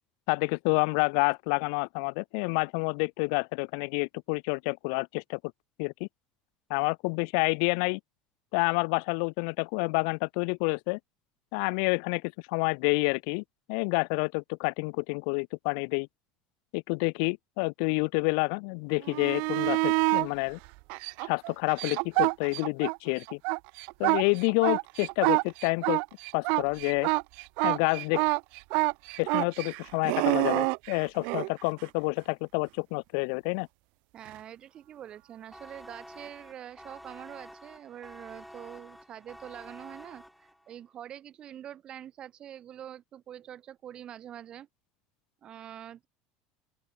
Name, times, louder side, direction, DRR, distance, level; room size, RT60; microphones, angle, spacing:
voice 1, 0.3-5.4 5.8-6.1 6.7-8.0 8.5-11.0 11.5-16.1 16.7-20.6 21.2-23.4 24.0-26.0 26.3-27.1 27.6-28.2 29.2-33.7, left 40 dB or more, 70° left, 0.9 m, -28 dB
sound 1, 19.0-20.3 20.9-23.0 23.3-31.5 34.3-34.4, right 33 dB, 65° right, 1.1 m, -27 dB
voice 2, 34.1-44.7 45.4-46.1, right 10 dB, 35° right, 3.3 m, -45 dB
sound 2, 35.5-40.8, equal, ahead, 6.2 m, -49 dB
open air
cardioid pair, 145°, 3 cm